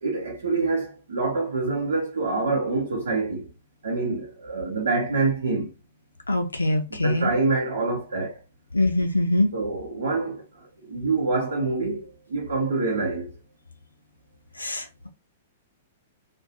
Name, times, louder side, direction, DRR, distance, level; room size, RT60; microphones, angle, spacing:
voice 1, 0.0-3.5 3.8-5.7 6.9-8.4 9.5-13.3, right 3 dB, 70° right, 0.7 m, -26 dB
voice 2, 6.3-7.3 8.7-9.5 14.6-15.1, left 1 dB, 80° left, 0.4 m, -23 dB
2.3 x 2.1 x 2.7 m
figure-of-eight pair, 105°, 0 cm